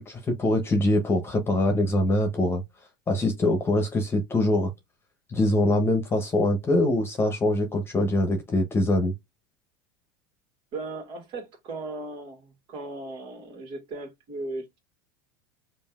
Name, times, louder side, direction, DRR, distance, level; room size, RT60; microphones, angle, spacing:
voice 1, 0.0-2.6 3.1-4.7 5.3-9.1, left 1 dB, 20° left, 1.0 m, -23 dB
voice 2, 10.7-14.8, right 2 dB, 55° right, 1.9 m, -37 dB
5.2 x 2.7 x 2.5 m
hypercardioid pair, 90°, 11 cm